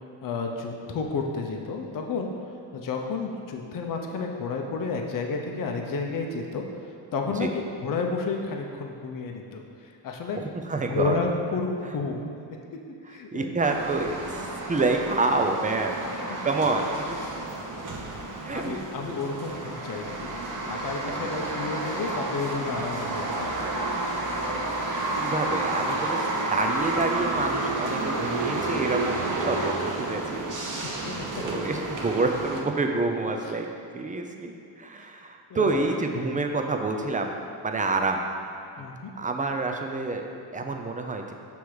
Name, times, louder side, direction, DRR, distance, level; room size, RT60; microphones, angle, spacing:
voice 1, 0.2-2.3 2.7-6.6 7.1-7.5 7.8-9.6 10.0-10.4 10.9-12.3 13.1-13.5 16.0-16.2 18.0-18.1 18.4-20.3 20.7-23.4 30.8-31.3 31.5-31.6 35.0-35.1 35.5-35.8 38.8-39.1, left 4 dB, 45° left, 2 dB, 0.7 m, -31 dB
voice 2, 10.4-11.2 13.3-15.9 16.4-17.2 18.4-18.8 21.2-21.3 25.2-26.2 26.5-30.4 31.4-33.7 33.9-38.2 38.8-38.9 39.2-41.3, right 3 dB, 20° right, 3 dB, 0.4 m, -28 dB
sound 1, 13.6-32.6, right 2 dB, 40° right, 0.9 m, -30 dB
6.0 x 3.5 x 4.8 m, 2.4 s
cardioid pair, 90°, 48 cm